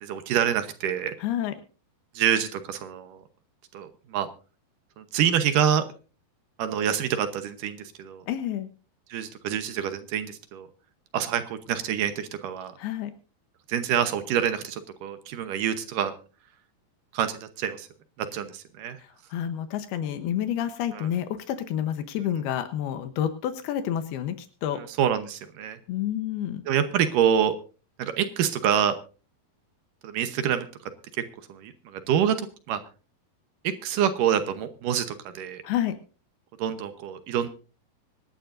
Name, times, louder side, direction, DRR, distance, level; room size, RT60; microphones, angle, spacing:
voice 1, 0.0-1.1 2.2-3.2 3.7-4.3 5.0-5.8 6.6-8.3 9.1-10.7 11.1-12.7 13.7-16.1 17.1-17.9 18.2-19.0 20.9-21.1 24.8-25.8 26.7-27.5 28.0-29.0 30.0-30.7 31.1-31.2 31.5-32.8 33.6-35.6 36.6-37.5, right 9 dB, 70° right, 9 dB, 2.4 m, -26 dB
voice 2, 1.2-1.5 8.3-8.7 12.8-13.1 19.3-24.8 25.9-26.6 35.6-35.9, left 10 dB, 85° left, 9 dB, 3.0 m, -29 dB
25.0 x 11.5 x 2.6 m, 0.36 s
omnidirectional pair, 4.4 m